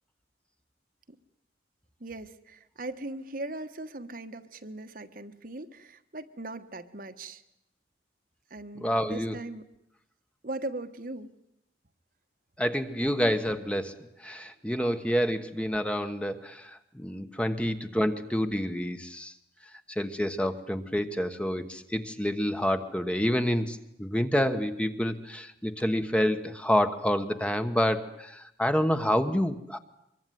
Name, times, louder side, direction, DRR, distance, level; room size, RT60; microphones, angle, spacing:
voice 1, 2.0-7.4 8.5-9.7 10.4-11.3, right 2 dB, 50° right, 8 dB, 1.4 m, -39 dB
voice 2, 8.8-9.4 12.6-14.0 14.2-19.3 19.9-29.8, equal, 5° left, 8 dB, 1.3 m, -28 dB
24.5 x 23.0 x 9.4 m, 0.80 s
head